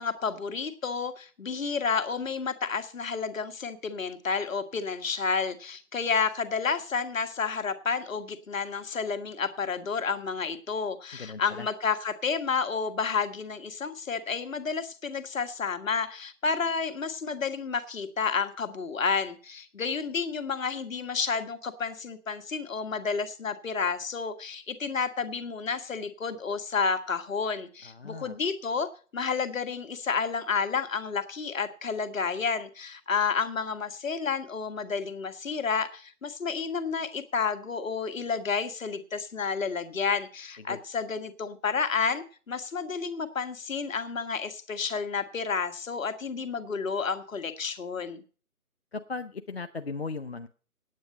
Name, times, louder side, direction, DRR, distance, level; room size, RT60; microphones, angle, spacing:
voice 1, 0.0-48.2, left 5 dB, 60° left, 9 dB, 1.6 m, -30 dB
voice 2, 11.1-11.7 27.8-28.4 40.7-40.8 48.9-50.5, left 4 dB, 45° left, 8 dB, 0.6 m, -37 dB
9.2 x 8.6 x 7.6 m, 0.40 s
hypercardioid pair, 165°, 44 cm